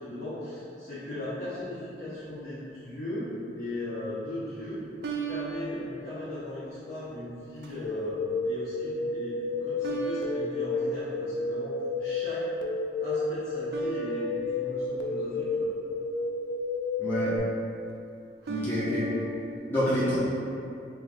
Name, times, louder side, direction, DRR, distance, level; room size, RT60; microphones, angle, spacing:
voice 1, 0.0-4.8 5.3-9.3 9.6-12.4 13.0-15.7, left 1 dB, 50° left, -11 dB, 0.7 m, -38 dB
sound 1, 1.2-2.1 5.0-7.1 7.6-8.1 9.8-11.8 13.7-16.2 18.4-19.6, right 2 dB, 60° right, 0.3 m, -39 dB
sound 2, 7.8-17.4, left 2 dB, 85° left, 0.3 m, -31 dB
voice 2, 17.0-17.3 18.5-19.1 19.7-20.2, equal, 10° left, -12 dB, 0.7 m, -27 dB
4.6 x 2.4 x 2.5 m, 2.6 s
head